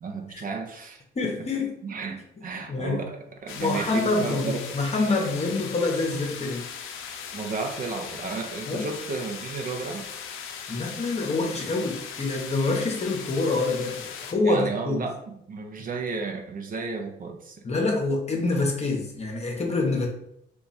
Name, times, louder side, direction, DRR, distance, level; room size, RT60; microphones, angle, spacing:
voice 1, 0.0-1.0 1.8-4.6 7.3-10.1 14.4-17.6, right 4 dB, 45° right, 4 dB, 0.6 m, -33 dB
voice 2, 1.1-1.8 2.4-3.0 3.5-6.7 8.7-8.8 10.7-15.0 15.8-15.9 17.6-20.1, left 3 dB, 35° left, 1 dB, 0.8 m, -26 dB
sound 1, 3.5-14.3, left 7 dB, 85° left, 0.5 m, -39 dB
2.9 x 2.3 x 4.0 m, 0.76 s
cardioid pair, 90°, 20 cm